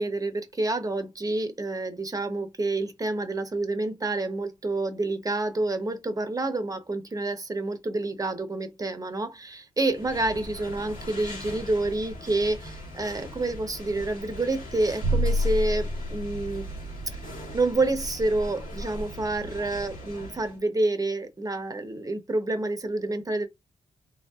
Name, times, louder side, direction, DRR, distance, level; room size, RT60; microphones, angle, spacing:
voice 1, 0.0-16.7 17.1-17.2 17.5-23.5, right 2 dB, 25° right, 0.8 m, -28 dB
sound 1, 9.8-20.6, left 1 dB, 85° left, 1.8 m, -40 dB
sound 2, 15.0-17.5, equal, 85° right, 0.9 m, -28 dB
3.3 x 2.6 x 2.3 m
cardioid pair, 65°, 14 cm